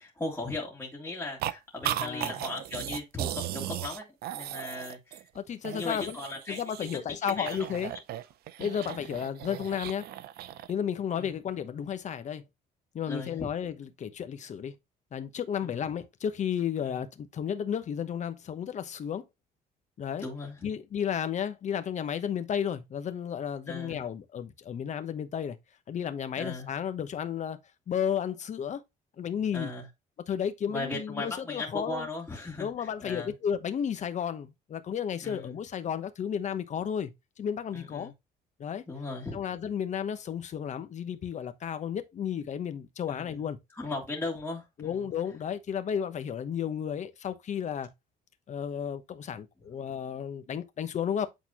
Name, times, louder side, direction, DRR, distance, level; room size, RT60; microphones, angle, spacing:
voice 1, 0.0-5.2 5.7-6.6 7.2-7.6 11.2-11.4 13.1-13.5 15.6-15.8 16.8-17.0 20.2-20.7 23.7-24.0 26.4-26.7 29.5-29.8 30.7-33.3 35.2-35.5 37.7-38.1 38.9-39.4 43.1-43.3 43.8-45.1, left 2 dB, 10° left, 2.4 m, -37 dB
sound 1, 1.4-1.5 1.8-5.4 5.6-7.0 7.3-10.7, right 13 dB, 65° right, 0.6 m, -36 dB
voice 2, 2.0-2.3 5.3-6.2 6.5-7.9 8.6-10.0 10.7-12.4 12.9-14.7 15.1-19.2 20.0-20.2 20.6-25.6 25.9-27.6 27.9-28.8 29.2-29.7 30.3-32.1 32.6-37.1 37.4-38.1 38.6-38.8 39.3-43.6 44.8-47.9 48.5-51.3, left 8 dB, 45° left, 1.0 m, -33 dB
8.4 x 4.1 x 2.9 m
cardioid pair, 110°, 17 cm